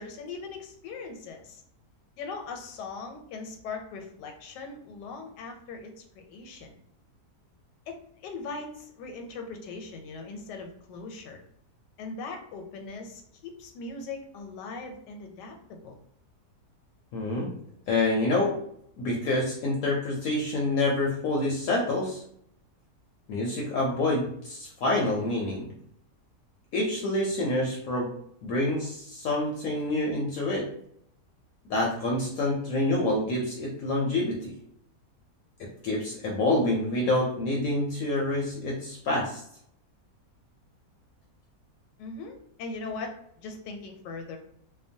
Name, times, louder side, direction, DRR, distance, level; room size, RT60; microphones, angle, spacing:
voice 1, 0.0-1.6 2.2-6.8 7.9-11.4 12.0-16.0 42.0-44.4, left 4 dB, 90° left, 4 dB, 1.2 m, -40 dB
voice 2, 17.1-17.5 17.9-18.6 19.0-22.2 23.3-25.7 26.7-28.1 28.4-30.7 31.7-34.5 35.6-39.4, left 2 dB, 70° left, -3 dB, 0.9 m, -27 dB
2.8 x 2.1 x 2.6 m, 0.68 s
omnidirectional pair, 1.8 m